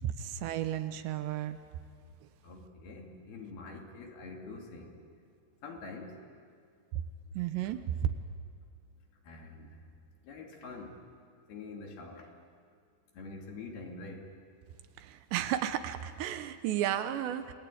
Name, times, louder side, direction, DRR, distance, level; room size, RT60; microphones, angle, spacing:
voice 1, 0.0-1.6 7.3-8.1 15.0-17.5, right 11 dB, 75° right, 10 dB, 3.0 m, -33 dB
voice 2, 2.4-5.0 5.6-6.2 9.2-9.8 10.2-11.0 11.5-12.3 13.1-14.3, left 3 dB, 60° left, 1 dB, 4.5 m, -45 dB
30.0 x 21.0 x 9.4 m, 2.2 s
omnidirectional pair, 5.2 m